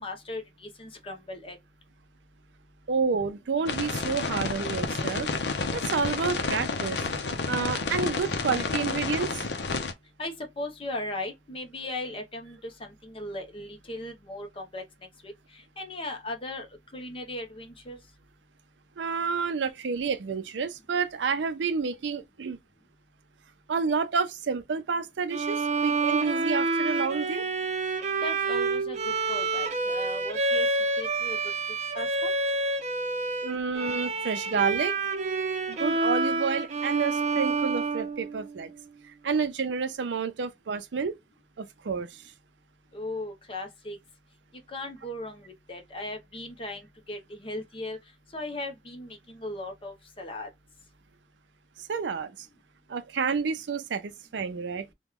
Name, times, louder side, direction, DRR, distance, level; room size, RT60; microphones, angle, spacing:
voice 1, 0.0-1.6 10.2-14.8 15.2-15.3 15.8-16.7 16.9-18.0 28.2-30.7 31.0-31.4 31.9-32.1 42.9-44.0 44.7-48.0 48.3-50.5, left 1 dB, 30° left, 0.7 m, -37 dB
voice 2, 2.9-5.3 5.7-7.0 7.5-9.5 19.0-22.6 23.7-27.4 33.4-35.0 35.7-38.7 39.1-41.2 41.6-42.3 51.8-52.5 52.9-54.9, right 5 dB, 90° right, 0.5 m, -29 dB
sound 1, 3.7-9.9, left 4 dB, 70° left, 0.6 m, -30 dB
Bowed string instrument, 25.3-38.8, right 3 dB, 40° right, 0.6 m, -28 dB
3.0 x 2.2 x 3.5 m
head